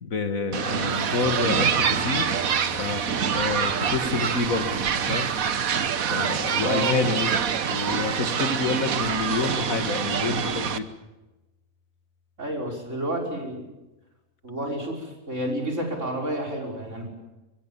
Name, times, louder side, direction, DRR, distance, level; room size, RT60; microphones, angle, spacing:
voice 1, 0.0-2.3 2.8-3.0 3.3-5.3 5.8-7.3 7.7-10.9, left 4 dB, 75° left, 8 dB, 2.3 m, -28 dB
sound 1, 0.5-10.8, right 7 dB, 85° right, 1.6 m, -26 dB
sound 2, 1.2-11.4, left 6 dB, 30° right, 2.7 m, -47 dB
voice 2, 6.6-7.1 12.4-13.7 14.4-17.1, right 1 dB, 60° right, 2 dB, 6.2 m, -30 dB
24.5 x 23.0 x 7.2 m, 1.1 s
omnidirectional pair, 1.4 m